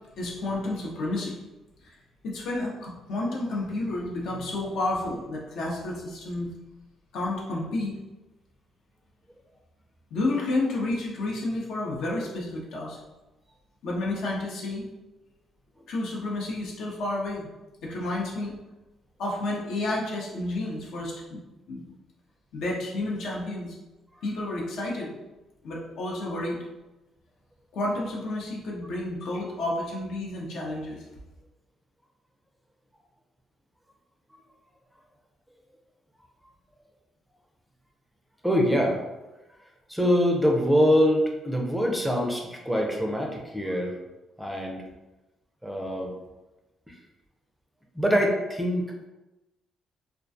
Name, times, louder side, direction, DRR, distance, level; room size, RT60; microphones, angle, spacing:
voice 1, 0.2-1.4 1.8-1.9 2.2-6.5 7.1-7.9 10.1-13.0 13.8-14.8 15.9-17.5 17.8-18.6 19.2-21.4 21.7-21.8 22.5-23.8 24.2-25.1 25.6-26.6 27.7-31.0, left 2 dB, 75° left, -2 dB, 0.6 m, -30 dB
voice 2, 38.4-39.0 39.9-44.0 44.4-44.8 45.6-46.1 46.9-47.0 47.9-49.1, equal, 5° right, 0 dB, 0.4 m, -24 dB
2.3 x 2.2 x 2.6 m, 1.0 s
cardioid pair, 90°, 0 cm